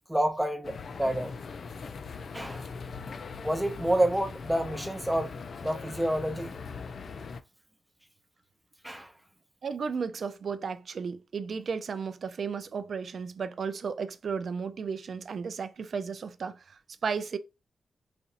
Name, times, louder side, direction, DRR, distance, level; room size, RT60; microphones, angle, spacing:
voice 1, 0.1-1.3 2.3-2.7 3.4-5.3 5.6-6.5 8.8-9.1, right 1 dB, 5° right, 0.6 m, -28 dB
sound 1, 0.6-7.4, left 5 dB, 55° left, 0.3 m, -40 dB
voice 2, 9.6-17.4, right 5 dB, 60° right, 0.3 m, -34 dB
4.1 x 2.5 x 2.5 m
wide cardioid pair, 110°, 0 cm